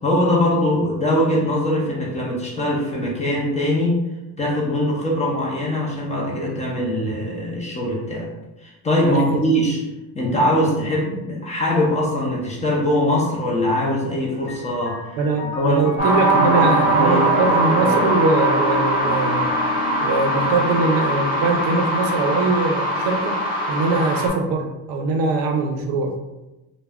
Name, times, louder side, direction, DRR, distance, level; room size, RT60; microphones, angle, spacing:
voice 1, 0.0-4.0 4.4-8.3 8.6-9.8 10.1-15.1 15.6-15.9 16.3-18.1, left 1 dB, 20° left, -4 dB, 0.4 m, -22 dB
voice 2, 9.0-9.4 15.2-19.5 20.0-23.4 23.7-26.1, right 3 dB, 65° right, 3 dB, 0.5 m, -22 dB
Piano, 14.3-23.9, left 3 dB, 70° left, 0.6 m, -31 dB
sound 1, 16.0-24.3, right 1 dB, 15° right, 0.7 m, -21 dB
2.2 x 2.1 x 3.4 m, 1.0 s
cardioid pair, 155°, 38 cm